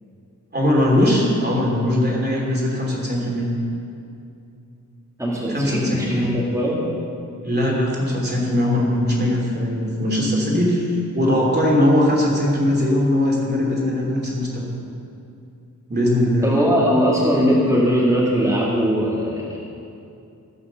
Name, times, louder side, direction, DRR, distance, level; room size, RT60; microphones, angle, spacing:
voice 1, 0.5-3.5 5.5-6.4 7.4-14.7 15.9-16.5, left 1 dB, 30° right, -3 dB, 3.1 m, -20 dB
voice 2, 5.2-6.8 16.4-19.6, equal, 10° right, -7 dB, 2.1 m, -20 dB
16.0 x 7.8 x 6.9 m, 2.6 s
wide cardioid pair, 155°, 33 cm